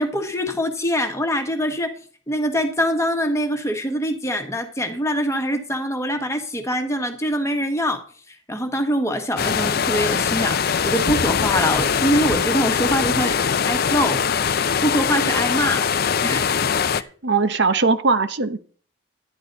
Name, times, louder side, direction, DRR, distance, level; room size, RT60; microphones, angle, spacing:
voice 1, 0.0-1.9 2.3-8.0 8.5-13.4 13.7-15.9 16.2-16.5 16.9-17.1, equal, 15° left, 6 dB, 1.4 m, -24 dB
sound 1, 9.4-17.0, left 7 dB, 50° left, 0.5 m, -22 dB
voice 2, 17.2-18.6, right 4 dB, 55° right, 11 dB, 0.8 m, -19 dB
11.5 x 10.5 x 4.0 m, 0.43 s
head